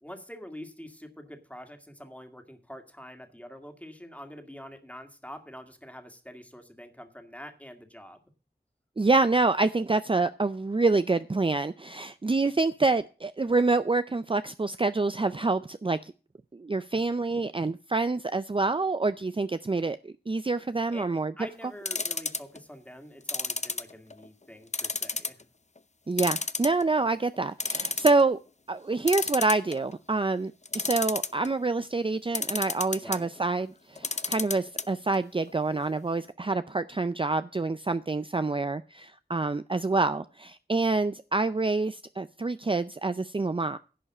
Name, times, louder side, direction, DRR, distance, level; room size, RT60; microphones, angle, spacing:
voice 1, 0.0-8.2 20.9-21.1 21.4-25.4 33.0-33.3, equal, 10° left, 5 dB, 2.0 m, -45 dB
voice 2, 9.0-16.1 16.5-21.3 26.1-28.4 28.7-43.8, right 3 dB, 30° right, 12 dB, 0.4 m, -27 dB
sound 1, 21.8-22.6 23.3-24.3 24.7-25.4 25.8-25.9 26.2-27.0 27.3-27.4 27.6-28.2 29.1-29.9 30.6-31.5 32.3-33.2 34.0-34.8 35.1-35.2 35.5-35.6, left 3 dB, 45° left, 0.6 m, -30 dB
11.0 x 5.5 x 8.5 m, 0.36 s
wide cardioid pair, 45°, 17 cm